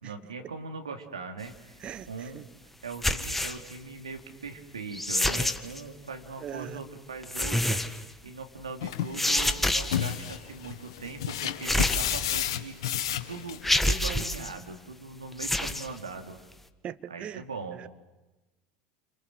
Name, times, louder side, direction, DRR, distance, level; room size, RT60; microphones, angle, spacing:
voice 1, 0.0-2.5 2.8-7.8 8.2-12.8 13.3-13.6 13.9-16.4 17.1-17.8, right 4 dB, 85° right, 2.9 m, -40 dB
sound 1, 2.9-3.7 4.9-5.8 7.2-8.1 9.1-10.1 11.6-12.5 13.1-13.2 13.6-14.5 15.3-15.9, left 1 dB, 5° left, 1.7 m, -27 dB
voice 2, 6.4-6.8 16.8-17.4, right 10 dB, 40° right, 1.1 m, -39 dB
sound 2, 8.8-13.9, left 10 dB, 70° left, 1.7 m, -32 dB
29.0 x 26.0 x 7.9 m
hypercardioid pair, 75°, 3 cm